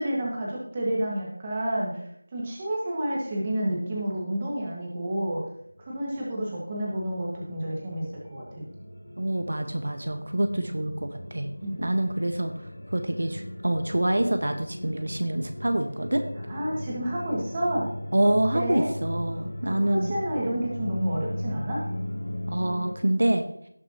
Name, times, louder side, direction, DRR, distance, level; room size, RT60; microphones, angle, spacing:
voice 1, 0.0-2.0 2.3-5.4 5.9-8.6 10.5-10.6 11.6-11.8 16.5-17.9 18.2-18.9 19.8-21.9, right 1 dB, 15° right, -3 dB, 1.7 m, -30 dB
sound 1, 5.2-22.9, left 1 dB, 75° left, 1.0 m, -37 dB
voice 2, 9.2-11.5 11.8-12.5 12.9-16.2 18.1-20.1 22.5-23.4, right 1 dB, 65° right, 6 dB, 1.2 m, -26 dB
17.5 x 6.7 x 2.9 m, 0.70 s
figure-of-eight pair, 180°, 0 cm